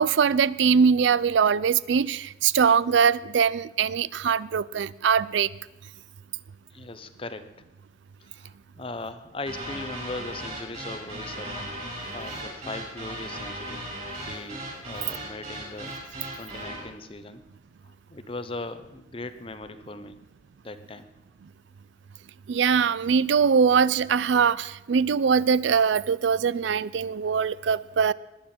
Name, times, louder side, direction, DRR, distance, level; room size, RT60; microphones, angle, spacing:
voice 1, 0.0-5.5 22.5-28.1, right 6 dB, 80° right, 20 dB, 0.4 m, -22 dB
voice 2, 6.7-7.5 8.2-11.8 12.1-13.8 14.3-16.0 16.4-17.4 17.8-20.2 20.6-21.1, left 2 dB, 30° left, 10 dB, 0.8 m, -39 dB
sound 1, 9.5-16.9, right 1 dB, 40° right, 5.8 m, -37 dB
20.5 x 9.7 x 4.4 m, 0.98 s
head